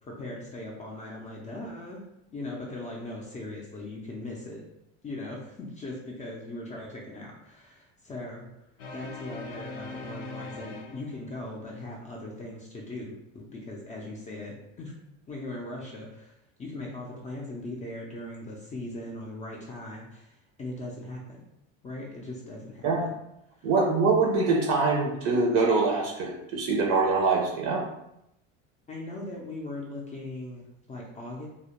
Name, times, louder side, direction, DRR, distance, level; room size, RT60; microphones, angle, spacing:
voice 1, 0.0-2.0 2.3-4.6 5.0-8.5 8.9-14.9 15.3-16.3 16.6-21.4 21.8-23.2 23.6-23.7 28.9-31.5, left 2 dB, 25° left, -2 dB, 0.4 m, -39 dB
sound 1, 8.8-11.5, left 3 dB, 90° left, 0.5 m, -40 dB
voice 2, 23.6-27.9, right 3 dB, 55° right, 0 dB, 0.5 m, -24 dB
2.3 x 2.1 x 2.9 m, 0.82 s
supercardioid pair, 120°, 31 cm